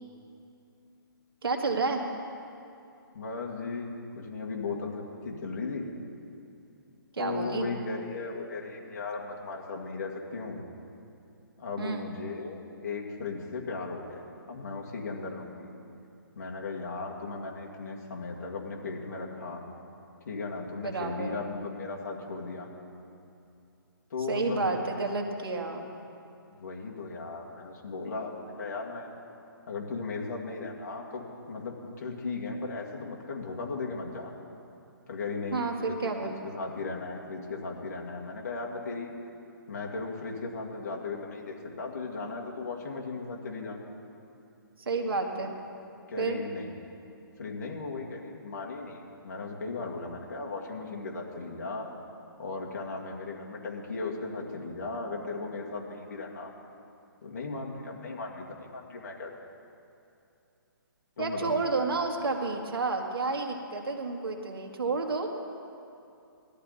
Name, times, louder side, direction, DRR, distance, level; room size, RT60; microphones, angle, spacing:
voice 1, 1.4-2.0 7.1-7.7 11.8-12.1 20.8-21.4 24.3-25.9 35.5-36.4 44.8-45.5 46.2-46.4 61.2-65.3, right 3 dB, 80° right, 2 dB, 2.0 m, -30 dB
voice 2, 3.1-3.9 4.2-5.8 7.2-10.6 11.6-15.7 16.4-19.6 20.3-22.7 24.1-24.8 26.6-29.1 29.7-31.2 31.5-34.3 35.1-35.9 36.2-39.1 39.7-43.8 45.3-45.4 46.1-46.7 47.4-51.9 52.4-56.5 57.2-59.3 61.2-61.6, left 3 dB, 45° left, -1 dB, 2.1 m, -36 dB
18.0 x 13.0 x 4.2 m, 2.6 s
hypercardioid pair, 175°, 12 cm